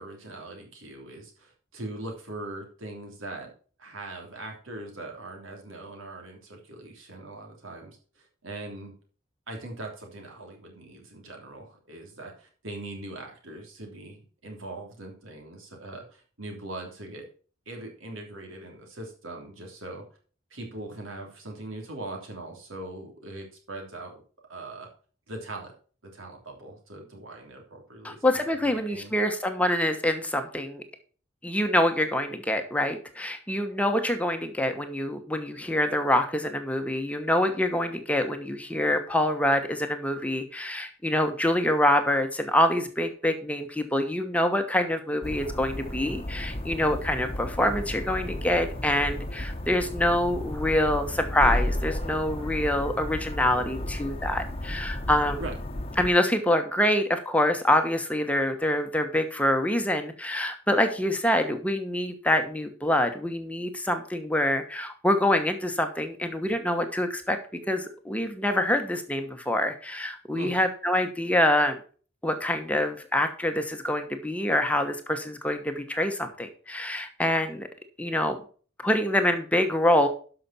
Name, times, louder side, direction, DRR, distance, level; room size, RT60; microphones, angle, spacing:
voice 1, 0.0-3.5 3.8-8.9 9.5-17.3 17.6-20.0 20.5-24.1 24.5-24.9 25.3-25.7 26.0-29.1 55.4-55.5 70.3-70.6, right 2 dB, 80° right, 2 dB, 3.3 m, -41 dB
voice 2, 28.0-30.8 31.4-55.4 56.0-67.4 67.7-71.8 72.2-77.7 78.0-78.4 78.8-80.1, left 1 dB, 5° left, 6 dB, 1.1 m, -26 dB
sound 1, 45.2-56.1, left 1 dB, 30° left, 1.0 m, -33 dB
12.5 x 5.9 x 4.2 m, 0.40 s
head